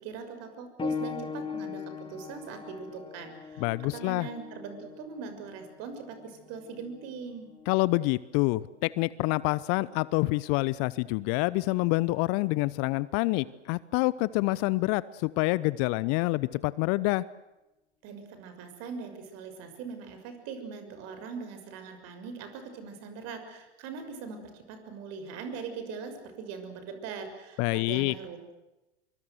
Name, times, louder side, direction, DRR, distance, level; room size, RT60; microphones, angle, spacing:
voice 1, 0.0-7.5 18.0-28.5, right 5 dB, 45° right, 8 dB, 6.4 m, -41 dB
sound 1, 0.8-11.0 12.0-12.1 12.8-12.9, left 5 dB, 15° left, 2.1 m, -41 dB
voice 2, 3.6-4.3 7.7-17.2 27.6-28.1, left 21 dB, 40° left, 20 dB, 0.8 m, -27 dB
24.5 x 24.0 x 8.0 m, 1.0 s
hypercardioid pair, 100°, 34 cm